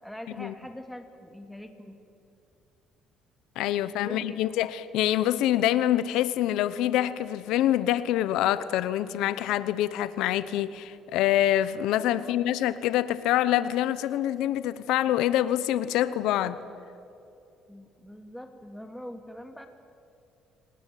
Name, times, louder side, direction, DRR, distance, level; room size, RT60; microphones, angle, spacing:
voice 1, 0.0-2.0 3.7-4.4 12.2-12.4 17.7-19.7, equal, ahead, 2.4 m, -43 dB
voice 2, 3.6-16.6, left 12 dB, 85° left, 0.9 m, -25 dB
27.5 x 19.5 x 9.3 m
cardioid pair, 135°, 0 cm